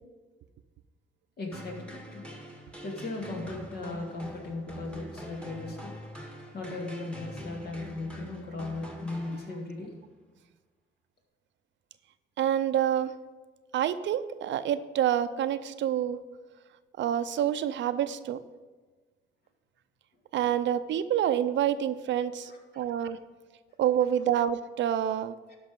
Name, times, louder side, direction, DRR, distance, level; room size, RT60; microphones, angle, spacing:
voice 1, 1.4-2.3 2.8-5.9 6.5-9.9 22.4-22.9 25.5-25.6, left 2 dB, 55° left, 1 dB, 2.3 m, -37 dB
sound 1, 1.5-9.9, equal, 5° left, 1.7 m, -45 dB
voice 2, 12.4-13.1 13.7-16.2 17.0-18.4 20.3-22.5 22.8-23.2 23.8-25.3, right 10 dB, 70° right, 13 dB, 0.5 m, -27 dB
12.0 x 5.4 x 5.3 m, 1.3 s
cardioid pair, 90°, 20 cm